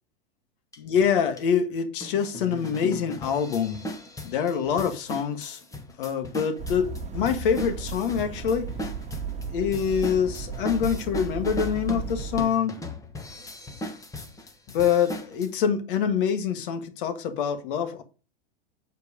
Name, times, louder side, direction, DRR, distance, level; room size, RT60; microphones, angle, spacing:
sound 1, 0.7-0.8 1.4-1.5 2.0-15.5, equal, 10° left, 1.2 m, -38 dB
voice 1, 0.8-3.8 4.2-5.6 6.0-8.7 9.5-12.7 14.7-18.0, left 7 dB, 65° left, 1.6 m, -25 dB
sound 2, 6.6-12.5, right 4 dB, 25° right, 1.4 m, -35 dB
7.4 x 4.6 x 4.9 m
hypercardioid pair, 110°, 29 cm